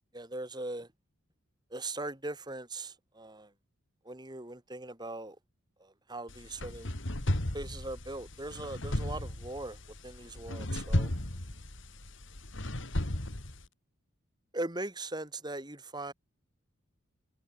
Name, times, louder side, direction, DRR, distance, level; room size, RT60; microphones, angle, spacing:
voice 1, 0.1-0.9 1.7-3.5 4.0-5.4 5.8-6.9 7.5-11.1 14.5-16.1, right 2 dB, 20° right, 3.0 m, -40 dB
sound 1, 6.3-13.7, left 1 dB, 60° left, 2.9 m, -35 dB
head